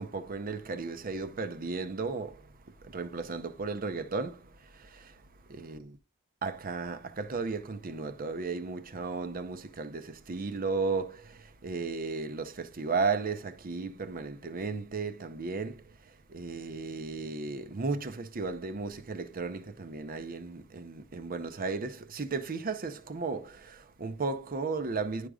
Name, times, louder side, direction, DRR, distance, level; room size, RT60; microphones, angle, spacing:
voice 1, 0.0-6.0 6.4-25.3, right 4 dB, 45° right, 0.7 m, -35 dB
10.5 x 4.9 x 2.3 m
head